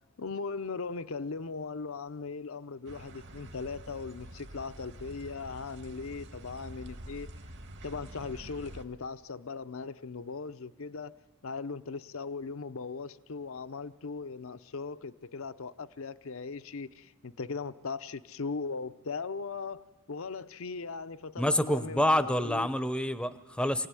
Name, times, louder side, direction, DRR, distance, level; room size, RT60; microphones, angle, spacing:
voice 1, 0.2-7.3 7.8-11.2 11.4-22.7, left 4 dB, 65° left, 13 dB, 0.7 m, -39 dB
sound 1, 2.9-8.9, right 1 dB, 55° right, 1.6 m, -47 dB
voice 2, 21.4-23.9, left 1 dB, 5° left, 13 dB, 0.7 m, -27 dB
24.5 x 17.0 x 9.8 m, 1.3 s
head